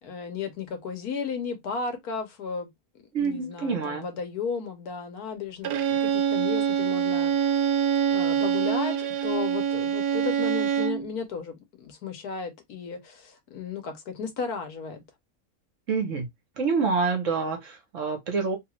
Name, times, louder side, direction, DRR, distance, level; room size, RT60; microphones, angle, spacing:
voice 1, 0.0-2.7 3.2-7.5 8.1-15.0, left 5 dB, 90° left, 1.4 m, -34 dB
voice 2, 3.1-4.1 15.9-16.3 16.6-18.6, right 4 dB, 60° right, 1.2 m, -27 dB
Bowed string instrument, 5.6-11.1, right 8 dB, 90° right, 1.1 m, -25 dB
3.2 x 2.4 x 3.0 m
omnidirectional pair, 1.6 m